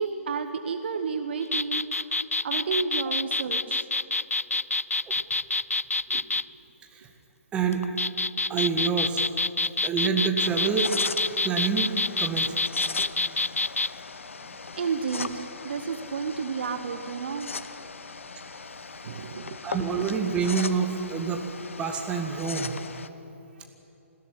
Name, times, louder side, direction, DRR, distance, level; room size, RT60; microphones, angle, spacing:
voice 1, 0.0-3.9 6.1-6.2 8.7-8.8 13.8-14.0 14.8-17.5 19.0-19.6 23.6-23.7, right 5 dB, 50° right, 8 dB, 1.1 m, -32 dB
sound 1, 1.4-6.4 7.7-13.9, left 3 dB, 80° left, 0.4 m, -27 dB
voice 2, 7.5-7.9 8.5-9.2 9.8-10.9 11.4-11.9 12.2-12.5 19.6-21.4 21.8-22.8, right 6 dB, 15° right, 4 dB, 1.8 m, -27 dB
sound 2, 10.4-23.1, left 4 dB, 65° left, 1.0 m, -39 dB
20.5 x 16.0 x 10.0 m, 3.0 s
figure-of-eight pair, 130°, 8 cm